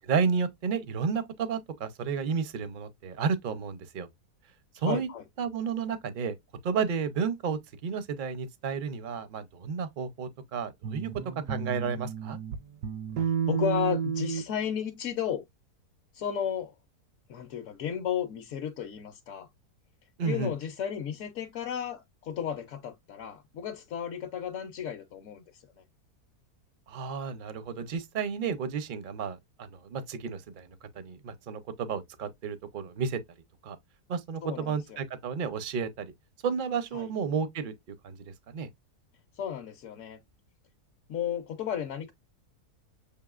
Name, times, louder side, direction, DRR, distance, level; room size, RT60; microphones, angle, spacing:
voice 1, 0.0-4.1 4.7-5.1 5.4-6.3 6.6-11.1 11.5-12.4 20.2-20.5 26.9-30.7 30.9-33.2 33.6-33.8 34.1-36.1 36.4-37.7 38.0-38.7, right 6 dB, 60° right, 0.5 m, -32 dB
voice 2, 4.9-5.2 13.5-15.4 16.1-16.7 17.3-19.5 20.2-25.8 34.4-35.0 36.9-37.1 39.4-40.2 41.1-42.1, left 9 dB, 65° left, 0.9 m, -34 dB
sound 1, 10.8-12.6 12.8-14.4, right 7 dB, 85° right, 1.2 m, -31 dB
6.7 x 2.7 x 2.4 m
omnidirectional pair, 1.7 m